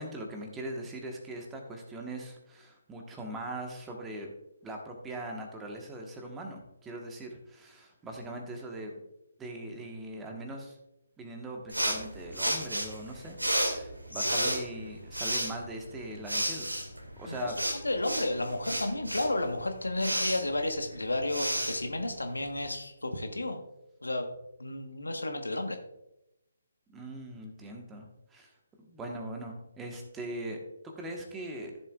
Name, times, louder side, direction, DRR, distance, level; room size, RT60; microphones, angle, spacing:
voice 1, 0.0-4.3 4.6-9.0 9.4-10.8 11.2-16.7 17.2-17.6 26.9-28.5 28.8-30.6 30.8-31.7, right 1 dB, 10° right, 1 dB, 1.4 m, -41 dB
sound 1, 11.7-22.6, right 1 dB, 80° right, 2.2 m, -33 dB
voice 2, 17.3-23.6 24.0-24.3 24.6-25.8, left 2 dB, 75° left, 5 dB, 1.3 m, -32 dB
14.0 x 7.1 x 2.5 m, 0.86 s
figure-of-eight pair, 140°, 0 cm